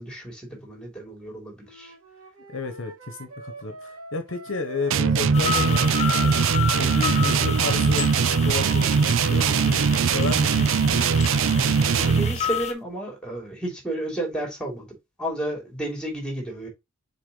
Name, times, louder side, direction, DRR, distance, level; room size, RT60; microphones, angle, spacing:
voice 1, 0.0-1.9 11.8-16.7, right 1 dB, 5° left, 3.2 m, -32 dB
Wind instrument woodwind instrument, 1.6-6.9, right 1 dB, 90° right, 2.4 m, -44 dB
voice 2, 2.5-11.2, left 3 dB, 60° left, 1.1 m, -33 dB
sound 1, 4.9-12.4, right 6 dB, 65° right, 0.5 m, -21 dB
sound 2, 5.3-12.7, left 7 dB, 30° left, 1.5 m, -31 dB
6.6 x 4.1 x 3.9 m
head